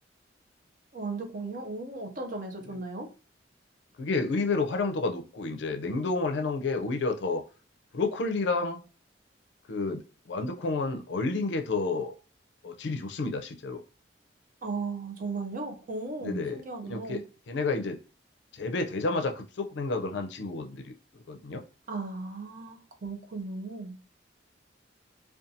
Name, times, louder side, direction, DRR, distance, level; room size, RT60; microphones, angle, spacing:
voice 1, 0.9-3.1 14.6-17.2 21.9-24.0, right 3 dB, 45° right, 4 dB, 0.5 m, -36 dB
voice 2, 4.0-7.4 7.9-8.8 9.7-10.0 10.3-12.1 12.6-13.8 16.2-18.0 18.5-21.6, left 3 dB, 65° left, 5 dB, 0.4 m, -30 dB
2.5 x 2.2 x 2.6 m, 0.37 s
head